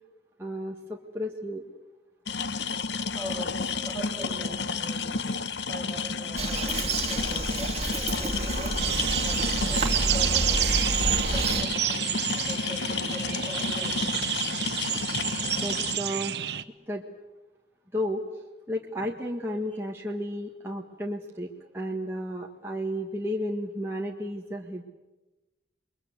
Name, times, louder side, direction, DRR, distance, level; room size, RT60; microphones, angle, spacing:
voice 1, 0.4-1.6 15.6-16.5 16.9-17.0 17.9-18.2 18.7-21.5 21.7-24.8, equal, 15° right, -1 dB, 1.7 m, -32 dB
sound 1, 2.3-16.0, left 5 dB, 80° left, 1.0 m, -31 dB
voice 2, 3.1-5.2 5.7-8.8 9.2-10.7 11.3-14.1, equal, 15° left, -6 dB, 7.0 m, -41 dB
Bird vocalization bird call bird song, 6.4-11.6, right 2 dB, 35° right, 2.5 m, -29 dB
sound 2, 8.8-16.6, right 11 dB, 70° right, 1.0 m, -29 dB
29.5 x 22.0 x 8.2 m, 1.1 s
head